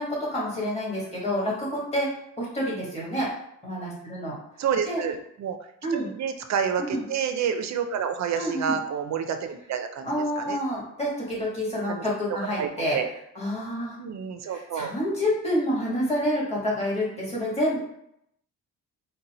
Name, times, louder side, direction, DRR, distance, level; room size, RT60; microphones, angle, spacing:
voice 1, 0.0-2.1 2.4-3.3 3.6-4.3 4.8-5.0 5.8-6.1 6.8-7.0 8.4-8.7 10.0-13.0 13.3-14.0 14.5-17.8, equal, 20° left, -6 dB, 1.5 m, -28 dB
voice 2, 4.6-5.6 5.9-10.6 11.9-12.1 12.6-13.1 14.0-14.9, right 7 dB, 55° right, 7 dB, 0.5 m, -29 dB
3.9 x 2.2 x 4.1 m, 0.75 s
cardioid pair, 145°, 35 cm